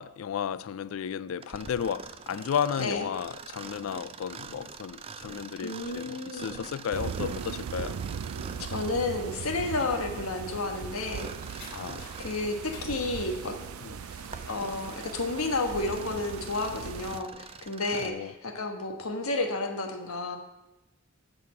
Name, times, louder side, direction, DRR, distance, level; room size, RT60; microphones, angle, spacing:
voice 1, 0.0-8.0 9.8-9.9 11.7-12.1 13.8-13.9 18.0-18.3, left 8 dB, 70° left, 0.3 m, -33 dB
Mechanisms, 1.4-9.1 10.9-12.5 13.1-13.2 13.9-18.2, right 5 dB, 25° right, 0.4 m, -45 dB
voice 2, 5.6-6.6 8.7-11.3 12.2-13.6 14.5-20.4, left 2 dB, 90° left, 1.3 m, -31 dB
sound 1, 6.9-17.2, right 7 dB, 85° right, 0.4 m, -39 dB
sound 2, 10.5-17.1, left 2 dB, 45° left, 3.7 m, -53 dB
12.0 x 4.2 x 7.2 m
head